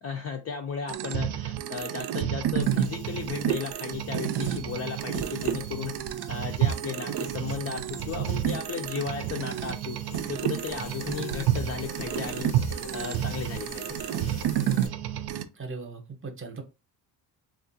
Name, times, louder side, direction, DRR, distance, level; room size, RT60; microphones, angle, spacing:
voice 1, 0.0-5.9 6.3-10.0 10.3-12.5 12.9-14.0, left 6 dB, 35° left, 3 dB, 0.5 m, -35 dB
sound 1, 0.9-15.4, right 11 dB, 65° right, 0.5 m, -30 dB
sound 2, 2.6-14.9, left 5 dB, 75° left, 0.8 m, -46 dB
voice 2, 15.6-16.6, right 4 dB, 30° right, 4 dB, 0.8 m, -38 dB
3.5 x 2.5 x 2.6 m, 0.28 s
cardioid pair, 120°, 42 cm